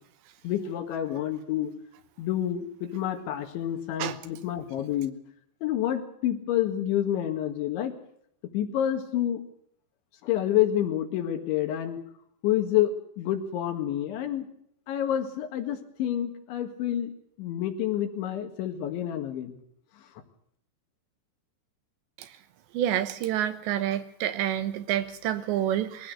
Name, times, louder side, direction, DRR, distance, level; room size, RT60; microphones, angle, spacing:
voice 1, 0.4-1.7 2.2-5.1 5.6-8.0 8.5-9.4 10.2-12.0 12.4-14.5 14.9-17.1 17.4-19.6, left 11 dB, 80° left, 5 dB, 4.2 m, -28 dB
voice 2, 22.7-26.1, right 11 dB, 75° right, 11 dB, 3.2 m, -28 dB
22.0 x 16.0 x 7.9 m, 0.69 s
omnidirectional pair, 5.4 m